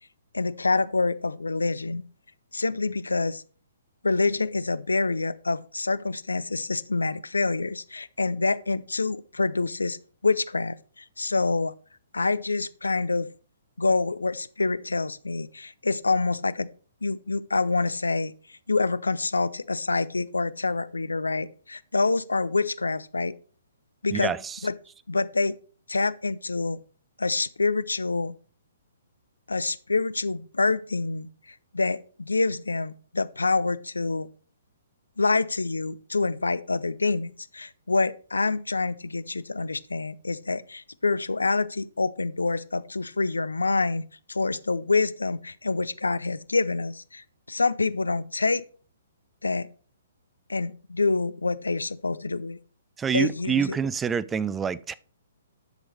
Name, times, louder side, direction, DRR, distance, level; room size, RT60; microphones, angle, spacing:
voice 1, 0.3-2.0 2.5-3.4 4.0-10.0 10.2-11.7 12.1-13.3 13.8-16.7 17.0-23.4 24.0-24.3 24.6-24.7 25.1-25.6 25.9-26.8 27.2-28.3 29.5-34.3 35.2-48.6 49.4-49.7 50.5-52.6 53.1-53.8, left 3 dB, 80° left, 0.5 m, -26 dB
voice 2, 24.1-24.6 53.0-54.9, right 6 dB, 10° right, 0.4 m, -27 dB
10.5 x 6.2 x 3.4 m
figure-of-eight pair, 125°, 0 cm